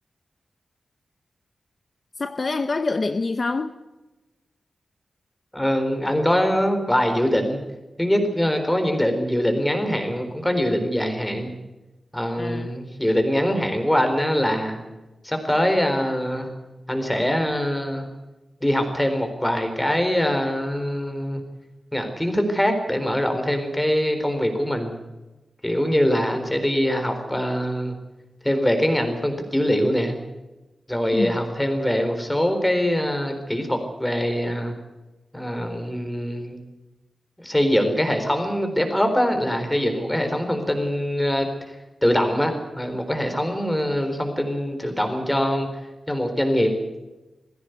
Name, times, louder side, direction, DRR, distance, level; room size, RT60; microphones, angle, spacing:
voice 1, 2.2-3.7 12.4-12.8 31.1-31.4, left 3 dB, 40° left, 9 dB, 0.9 m, -26 dB
voice 2, 5.5-7.6 8.0-11.5 12.1-14.8 15.2-16.5 16.9-18.1 18.6-21.4 21.9-25.0 25.6-28.0 28.4-30.2 30.9-34.7 35.3-36.6 37.4-41.5 42.0-45.7 46.1-46.7, equal, 5° left, 6 dB, 4.1 m, -23 dB
21.0 x 16.0 x 8.1 m, 1.1 s
wide cardioid pair, 150°, 0 cm